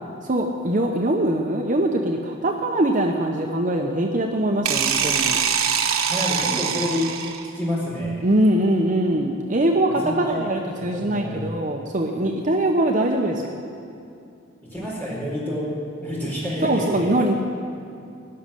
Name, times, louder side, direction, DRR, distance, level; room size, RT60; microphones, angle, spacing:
voice 1, 0.2-5.4 8.2-13.6 16.6-17.3, right 1 dB, 40° right, 2 dB, 0.7 m, -22 dB
sound 1, 4.6-7.6, right 7 dB, 90° right, 1.0 m, -23 dB
voice 2, 6.1-7.1 7.5-8.2 10.0-10.3 10.7-11.4 14.7-17.1, left 1 dB, 10° left, -7 dB, 4.5 m, -28 dB
17.5 x 6.4 x 9.9 m, 2.5 s
head